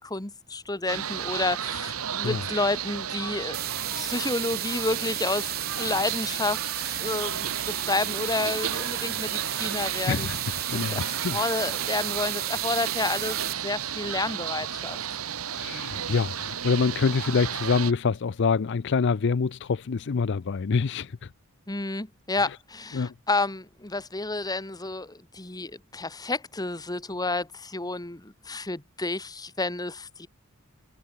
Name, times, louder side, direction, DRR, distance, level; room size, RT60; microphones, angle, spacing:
voice 1, 0.0-3.6 3.9-10.3 10.7-13.4 13.6-15.0 21.7-30.3, left 2 dB, 20° left, 1.7 m, -30 dB
sound 1, 0.9-17.9, right 9 dB, 80° right, 1.2 m, -33 dB
sound 2, 3.5-13.5, right 12 dB, 50° right, 2.5 m, -34 dB
voice 2, 10.1-10.4 10.7-11.4 15.5-21.3 22.9-23.1, left 5 dB, 55° left, 0.5 m, -26 dB
head